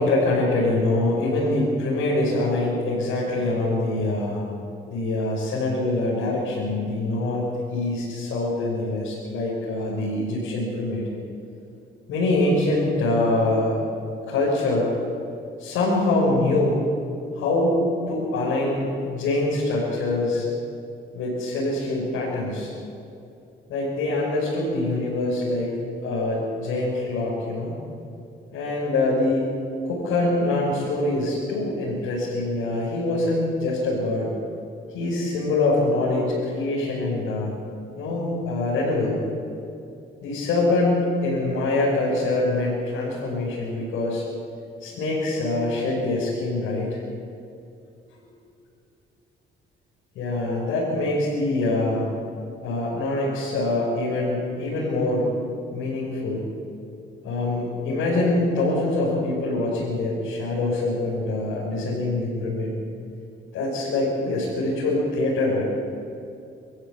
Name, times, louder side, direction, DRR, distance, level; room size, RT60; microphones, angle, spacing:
voice 1, 0.0-4.4 4.9-11.1 12.1-13.8 14.3-14.9 15.6-16.8 17.3-20.5 21.1-22.7 23.7-25.7 26.0-27.7 28.5-29.5 29.8-34.3 34.9-37.5 38.0-39.2 40.2-44.2 44.8-47.0 50.1-52.1 52.6-55.3 55.7-56.4 57.2-62.8 63.5-65.6, left 2 dB, 90° left, -7 dB, 6.1 m, -24 dB
25.0 x 14.5 x 8.6 m, 2.6 s
cardioid pair, 90°, 20 cm